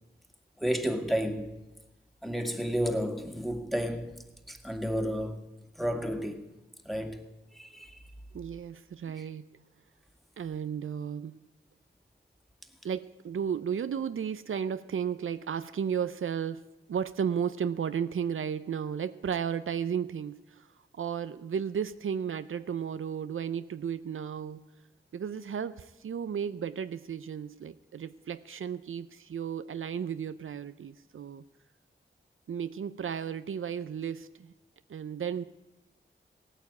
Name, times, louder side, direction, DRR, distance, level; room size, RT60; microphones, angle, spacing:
voice 1, 0.6-1.6 2.2-5.5 5.8-6.5 6.9-8.0 9.2-9.3, equal, ahead, 2.1 m, -32 dB
voice 2, 8.3-9.5 10.4-11.4 12.8-16.6 16.9-24.7 25.1-31.4 32.5-34.5 34.9-35.4, right 7 dB, 80° right, 0.5 m, -34 dB
16.5 x 9.3 x 8.4 m
cardioid pair, 45°, 21 cm